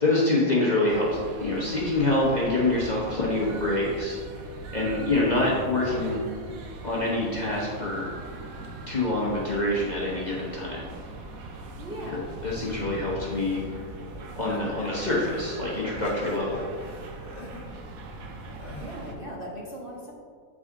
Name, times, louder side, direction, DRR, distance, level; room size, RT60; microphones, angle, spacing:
voice 1, 0.0-4.2 4.7-6.2 6.8-8.1 8.9-10.9 12.1-13.6 14.4-16.6, left 2 dB, 35° left, -6 dB, 0.9 m, -26 dB
sound 1, 0.9-19.2, right 2 dB, 65° right, 1.1 m, -40 dB
voice 2, 11.8-12.4 18.8-20.1, equal, 40° right, -4 dB, 0.9 m, -38 dB
sound 2, 14.5-15.2 15.7-17.9 18.4-19.1, left 2 dB, 60° left, 1.6 m, -41 dB
7.4 x 4.8 x 3.7 m, 2.1 s
omnidirectional pair, 1.7 m